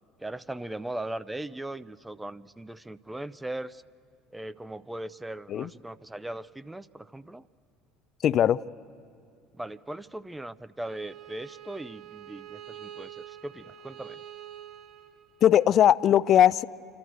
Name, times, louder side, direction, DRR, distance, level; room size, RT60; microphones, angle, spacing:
voice 1, 0.2-3.8 4.3-7.5 9.5-14.2, right 1 dB, 10° right, 0.5 m, -39 dB
voice 2, 8.2-8.6 15.4-16.6, left 10 dB, 50° left, 0.4 m, -20 dB
Bowed string instrument, 10.8-15.8, right 11 dB, 60° right, 1.3 m, -46 dB
27.5 x 12.5 x 7.9 m
hypercardioid pair, 70°, 0 cm